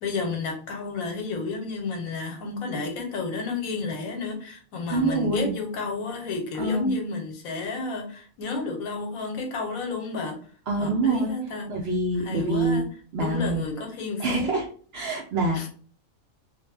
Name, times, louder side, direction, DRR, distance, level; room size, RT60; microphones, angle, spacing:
voice 1, 0.0-10.4 10.8-11.7 12.2-12.9 13.2-14.5 15.5-15.7, left 3 dB, 85° left, 3 dB, 1.1 m, -31 dB
voice 2, 4.9-5.5 6.6-6.9 10.7-11.3 11.7-12.8 13.1-13.7 14.2-14.7 14.9-15.7, right 2 dB, 65° right, 0 dB, 0.6 m, -25 dB
2.5 x 2.1 x 3.2 m, 0.44 s
omnidirectional pair, 1.5 m